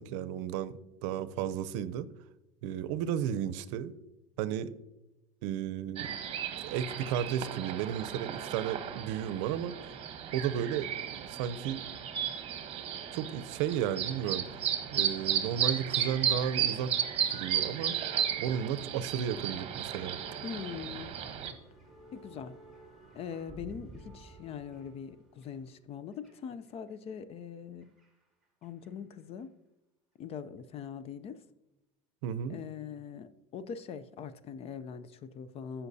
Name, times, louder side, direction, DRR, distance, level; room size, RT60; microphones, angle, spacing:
voice 1, 0.0-2.1 2.6-3.9 4.4-4.7 5.4-6.2 6.6-9.8 10.3-11.8 13.1-14.4 14.9-16.9 17.3-17.9 18.4-20.2 32.2-32.6, right 9 dB, 75° right, 14 dB, 0.6 m, -33 dB
sound 1, 6.0-21.5, right 9 dB, 40° right, 1.1 m, -34 dB
sound 2, 17.5-26.9 27.8-28.9 29.2-29.4 30.3-30.4, right 2 dB, ahead, 2.2 m, -54 dB
voice 2, 20.4-21.1 22.1-22.6 23.1-27.9 28.6-29.5 30.2-31.4 32.5-35.9, left 7 dB, 40° left, 14 dB, 0.5 m, -42 dB
15.0 x 5.7 x 2.7 m, 0.94 s
supercardioid pair, 120°, 16 cm